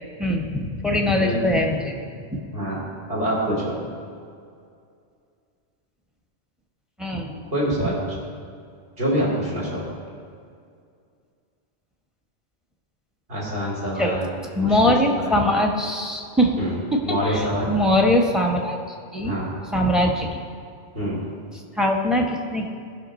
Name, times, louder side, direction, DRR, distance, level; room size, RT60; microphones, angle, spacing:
voice 1, 0.2-1.9 2.3-2.4 7.0-7.3 7.8-7.9 14.0-14.2 14.5-16.5 16.9-18.8 19.1-19.4 19.7-20.4 21.8-22.7, left 1 dB, ahead, 1 dB, 0.8 m, -21 dB
voice 2, 1.2-1.6 2.5-3.8 7.5-8.2 9.0-9.9 13.3-15.3 16.6-16.8 17.0-17.7 19.2-19.5 20.9-21.2, equal, 50° right, -7 dB, 3.2 m, -26 dB
15.5 x 5.7 x 4.2 m, 2.3 s
omnidirectional pair, 1.3 m